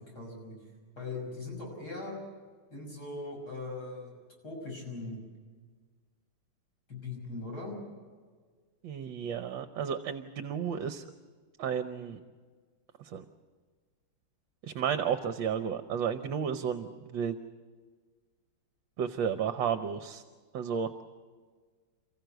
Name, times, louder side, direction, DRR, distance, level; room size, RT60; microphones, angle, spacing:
voice 1, 0.1-0.5 1.0-2.1 2.7-4.1 4.4-5.2 6.9-7.8, left 3 dB, 45° left, -1 dB, 6.6 m, -40 dB
voice 2, 8.8-11.0 11.6-12.2 13.0-13.2 14.6-17.4 19.0-20.2 20.5-20.9, right 7 dB, 65° right, 9 dB, 1.5 m, -32 dB
28.5 x 15.0 x 8.0 m, 1.5 s
omnidirectional pair, 2.4 m